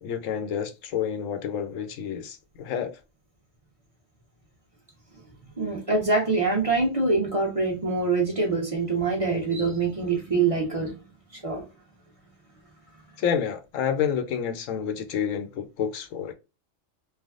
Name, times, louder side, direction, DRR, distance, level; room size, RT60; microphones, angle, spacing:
voice 1, 0.0-3.0 13.2-16.3, left 8 dB, 80° left, 0.9 m, -29 dB
voice 2, 5.6-11.1 11.3-11.6, right 3 dB, 30° right, 0.9 m, -25 dB
3.3 x 2.2 x 2.4 m
omnidirectional pair, 1.4 m